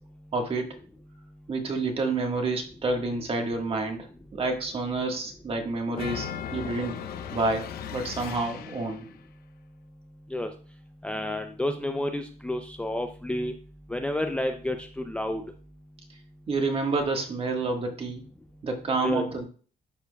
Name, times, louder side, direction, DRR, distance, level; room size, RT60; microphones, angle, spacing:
voice 1, 0.3-0.8 1.5-7.0 7.3-9.0 16.5-18.2 18.6-19.4, right 3 dB, 35° right, 3 dB, 1.6 m, -29 dB
sound 1, 5.9-9.1, left 8 dB, 65° left, 0.7 m, -37 dB
voice 2, 11.0-13.5 13.9-15.4 19.0-19.2, left 1 dB, 5° left, 5 dB, 0.5 m, -30 dB
11.5 x 4.6 x 2.3 m, 0.40 s
cardioid pair, 110°, 17 cm